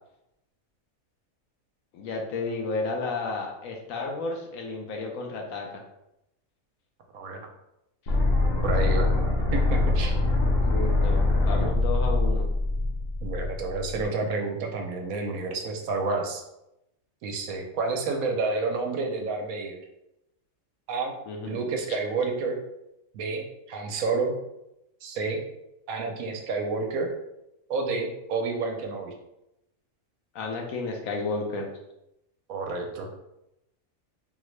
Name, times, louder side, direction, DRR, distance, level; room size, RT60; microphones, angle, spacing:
voice 1, 1.9-5.8 10.6-12.5 21.3-21.6 30.3-31.7, left 3 dB, 70° left, 1 dB, 1.0 m, -32 dB
voice 2, 7.1-7.5 8.6-9.1 9.5-10.1 13.2-16.4 17.2-19.8 20.9-21.2 21.5-22.6 23.1-24.3 25.0-25.4 25.9-27.1 27.7-29.1 32.5-33.1, right 3 dB, 75° right, 2 dB, 1.0 m, -29 dB
sound 1, 8.1-14.0, left 2 dB, 55° left, 0.7 m, -24 dB
3.8 x 2.1 x 3.0 m, 0.87 s
omnidirectional pair, 1.5 m